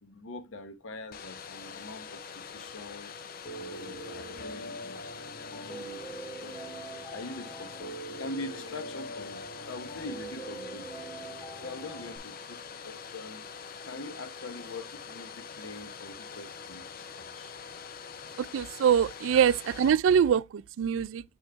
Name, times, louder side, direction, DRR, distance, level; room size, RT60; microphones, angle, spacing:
voice 1, 0.0-3.1 3.6-5.0 5.4-11.0 11.5-13.4 13.8-17.5 19.3-19.4, left 2 dB, 85° left, 0.9 m, -44 dB
Domestic sounds home sounds, 1.1-19.9, left 6 dB, 50° left, 0.5 m, -44 dB
Piano, 3.5-12.2, right 2 dB, 25° left, 1.2 m, -43 dB
voice 2, 18.4-21.2, right 8 dB, 80° right, 0.3 m, -24 dB
7.1 x 3.1 x 4.5 m
head